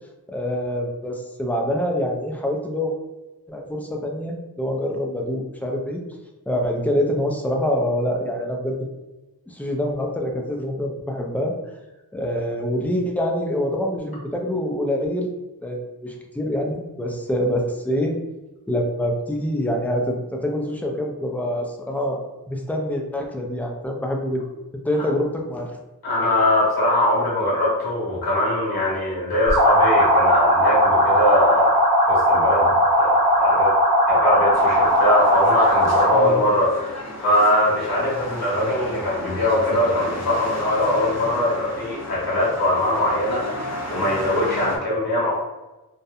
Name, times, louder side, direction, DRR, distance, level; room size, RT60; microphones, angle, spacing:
voice 1, 0.3-2.9 3.5-6.0 6.5-8.8 9.5-11.5 12.1-15.3 15.6-18.1 18.7-24.4 24.8-25.8 36.1-36.4, equal, 5° left, 1 dB, 0.3 m, -25 dB
voice 2, 26.0-32.7 33.0-33.7 34.1-45.3, left 1 dB, 80° left, -7 dB, 1.3 m, -22 dB
sound 1, 29.5-36.3, equal, 60° right, 0.7 m, -18 dB
sound 2, 34.5-44.8, left 1 dB, 45° left, 0.6 m, -33 dB
2.7 x 2.1 x 2.4 m, 1.1 s
wide cardioid pair, 85°, 37 cm